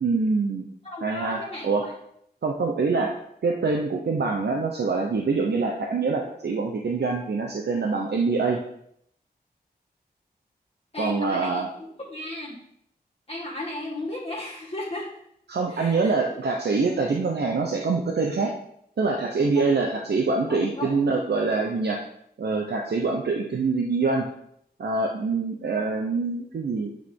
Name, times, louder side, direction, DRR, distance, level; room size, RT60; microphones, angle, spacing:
voice 1, 0.0-0.7 1.0-1.9 2.4-3.1 3.4-8.6 11.0-11.7 15.5-18.5 19.0-22.0 22.4-24.3 24.8-26.9, right 4 dB, 90° right, 1 dB, 0.9 m, -25 dB
voice 2, 0.8-1.9 10.9-11.6 12.1-12.6 13.3-15.1 15.7-16.1 19.5-19.6 20.5-21.0, left 1 dB, 35° left, -6 dB, 1.6 m, -35 dB
9.3 x 6.5 x 3.7 m, 0.73 s
wide cardioid pair, 100°, 17 cm